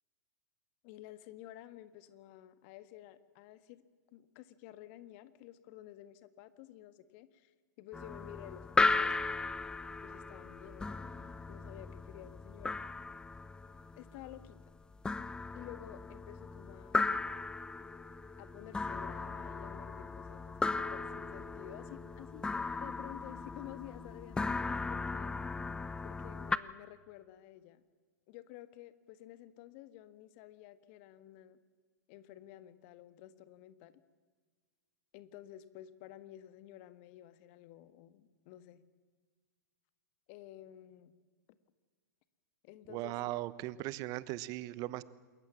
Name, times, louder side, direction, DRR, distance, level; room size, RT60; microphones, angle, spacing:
voice 1, 0.8-3.8 4.1-7.5 7.8-9.2 9.9-12.8 14.0-14.7 15.5-17.1 18.4-22.5 22.8-25.3 26.0-27.8 28.3-31.6 32.1-34.0 35.1-38.8 40.3-41.1 42.6-43.3, left 13 dB, 45° left, 13 dB, 1.6 m, -52 dB
sound 1, 7.9-26.6, left 3 dB, 10° left, 0.7 m, -37 dB
voice 2, 42.9-45.0, right 17 dB, 40° right, 17 dB, 1.1 m, -38 dB
28.0 x 22.0 x 7.4 m, 1.5 s
figure-of-eight pair, 105°, 10 cm